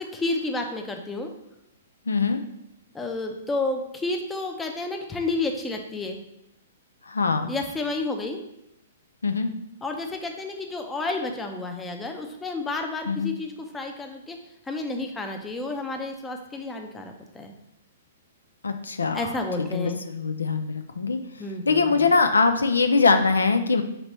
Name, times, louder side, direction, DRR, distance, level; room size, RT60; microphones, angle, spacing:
voice 1, 0.0-1.3 2.9-6.2 7.5-8.4 9.8-14.4 14.7-17.5 19.1-20.0 21.4-22.1, left 2 dB, 10° left, 3 dB, 0.5 m, -31 dB
voice 2, 2.1-2.4 7.1-7.5 9.2-9.5 13.1-13.3 18.6-19.3 19.7-21.2 21.7-23.8, left 4 dB, 90° left, 8 dB, 0.3 m, -22 dB
5.1 x 3.0 x 3.0 m, 0.84 s
hypercardioid pair, 125°, 0 cm